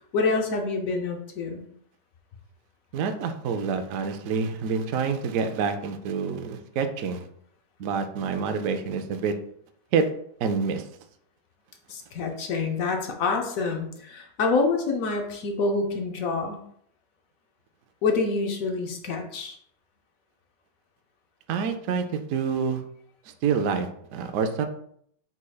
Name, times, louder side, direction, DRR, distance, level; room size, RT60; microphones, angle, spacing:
voice 1, 0.1-1.7 11.9-16.6 18.0-19.6, left 3 dB, 65° left, 3 dB, 0.9 m, -27 dB
voice 2, 2.9-7.3 7.8-9.3 9.9-10.0 10.4-10.9 21.5-22.8 23.4-24.7, right 5 dB, 75° right, 7 dB, 0.7 m, -27 dB
4.8 x 4.2 x 2.3 m, 0.67 s
omnidirectional pair, 1.9 m